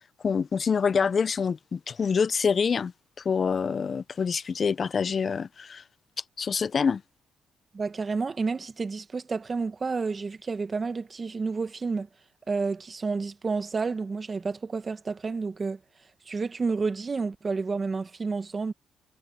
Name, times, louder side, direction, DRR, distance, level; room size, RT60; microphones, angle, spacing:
voice 1, 0.2-2.9 3.2-5.8 6.4-7.0, left 6 dB, 45° left, 0.5 m, -26 dB
voice 2, 7.7-12.1 12.5-15.8 16.3-18.7, right 4 dB, 35° right, 1.4 m, -30 dB
cardioid pair, 90°, 0 cm